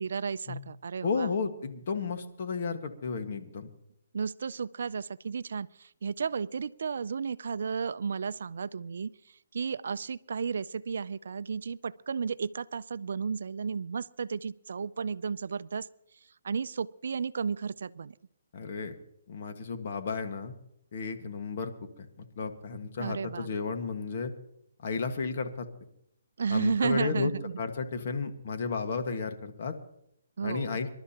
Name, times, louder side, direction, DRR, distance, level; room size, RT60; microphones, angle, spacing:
voice 1, 0.0-1.3 4.1-9.1 9.5-15.9 16.4-18.1 23.0-23.5 26.4-27.6 30.4-30.7, right 5 dB, 65° right, 17 dB, 0.4 m, -33 dB
voice 2, 1.0-3.7 18.5-18.9 19.3-20.5 20.9-21.7 22.2-24.3 24.8-25.6 26.5-27.3 27.6-29.7 30.4-30.9, left 4 dB, 45° left, 6 dB, 1.5 m, -33 dB
26.5 x 12.0 x 2.9 m, 0.75 s
hypercardioid pair, 165°, 0 cm